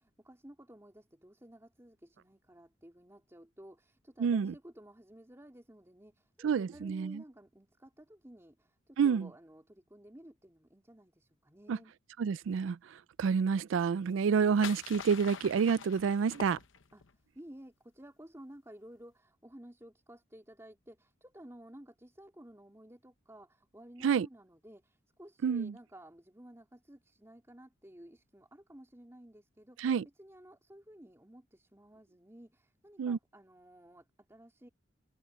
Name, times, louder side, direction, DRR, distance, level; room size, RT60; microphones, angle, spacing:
voice 1, 0.0-11.9 16.9-17.0 17.3-29.9 30.2-34.7, right 1 dB, 15° right, 3.2 m, -54 dB
voice 2, 4.2-4.5 6.4-7.2 9.0-9.3 11.7-11.8 12.2-16.6 24.0-24.3 25.4-25.7 29.8-30.0 33.0-33.2, right 6 dB, 90° right, 0.4 m, -29 dB
sound 1, 14.1-17.1, left 7 dB, 80° left, 0.9 m, -45 dB
head